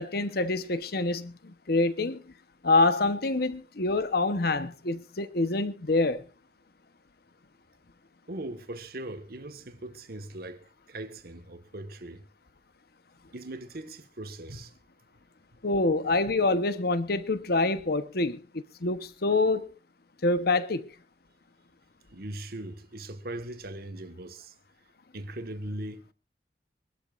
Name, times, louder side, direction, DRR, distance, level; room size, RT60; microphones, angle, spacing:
voice 1, 0.0-2.2 2.6-6.2 15.6-19.7 20.2-20.9, left 2 dB, 60° left, 1.0 m, -26 dB
voice 2, 8.3-12.2 13.3-14.7 22.1-24.5 25.1-26.1, right 1 dB, 60° right, 1.5 m, -40 dB
25.0 x 12.5 x 2.5 m
head